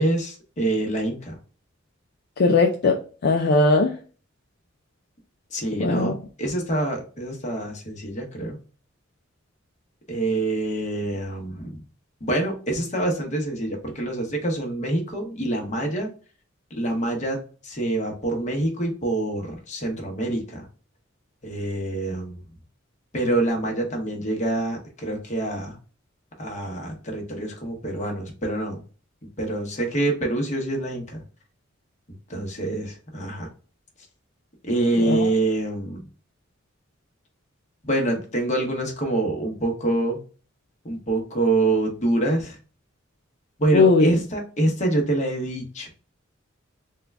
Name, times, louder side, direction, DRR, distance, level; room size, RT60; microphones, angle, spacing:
voice 1, 0.0-1.4 5.5-8.6 10.1-11.8 12.2-16.1 16.7-20.7 21.4-22.4 23.1-25.8 26.4-28.8 29.4-31.2 32.3-33.5 34.6-36.0 37.8-40.2 40.8-42.6 43.6-45.9, right 2 dB, 35° left, 2 dB, 1.0 m, -26 dB
voice 2, 2.4-3.9 5.8-6.1 35.1-35.3 43.7-44.1, left 3 dB, 55° left, 2 dB, 0.4 m, -19 dB
3.7 x 2.3 x 3.2 m, 0.38 s
head